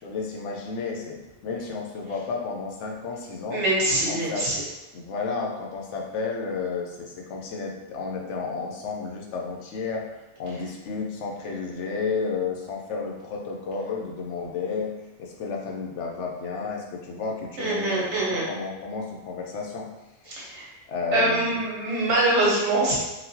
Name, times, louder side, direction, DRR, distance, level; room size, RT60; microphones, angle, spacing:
voice 1, 0.0-3.6 4.1-4.5 4.9-10.0 10.4-14.9 15.2-19.9 20.9-21.6, left 4 dB, 75° left, 0 dB, 0.9 m, -32 dB
voice 2, 3.5-4.6 17.6-18.4 20.3-20.7 21.1-23.0, right 1 dB, 70° right, -5 dB, 1.2 m, -24 dB
4.0 x 2.2 x 2.7 m, 1.0 s
omnidirectional pair, 1.3 m